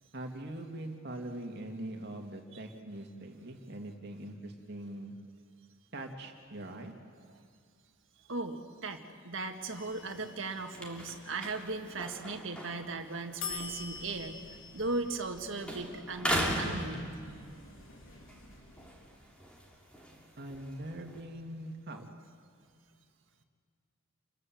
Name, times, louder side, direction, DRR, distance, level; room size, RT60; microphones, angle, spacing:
voice 1, 0.1-5.1 5.9-6.9 20.4-22.0, right 1 dB, 55° right, 3 dB, 2.5 m, -42 dB
voice 2, 8.3-17.1, right 3 dB, 70° right, 5 dB, 1.8 m, -38 dB
sound 1, 9.7-11.7 13.4-19.4, left 4 dB, 75° left, 3.4 m, -47 dB
sound 2, 9.7-15.4 15.6-17.7 18.1-21.2, equal, 5° left, 3.1 m, -39 dB
28.5 x 21.5 x 7.8 m, 2.1 s
head